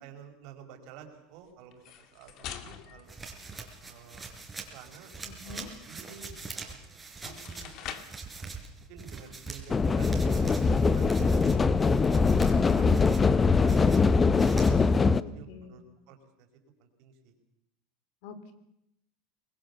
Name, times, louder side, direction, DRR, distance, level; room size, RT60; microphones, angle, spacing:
voice 1, 0.0-3.1 3.8-4.2 4.7-5.1 5.4-6.8 7.2-8.0 8.3-8.5 8.9-11.9 12.6-14.0 15.0-16.5 16.8-17.3, right 7 dB, 60° right, 5 dB, 5.0 m, -51 dB
sound 1, 1.7-4.1 6.5-6.6 7.1-8.3, left 9 dB, 50° left, 2.2 m, -44 dB
sound 2, 3.1-15.0, right 4 dB, 10° right, 4.2 m, -44 dB
voice 2, 5.3-5.7 12.4-13.1 15.1-15.8 18.2-18.5, left 4 dB, 65° left, 12 dB, 3.2 m, -44 dB
sound 3, 9.7-15.2, left 4 dB, 20° left, 0.8 m, -22 dB
24.0 x 21.0 x 7.0 m, 0.82 s
supercardioid pair, 125°, 0 cm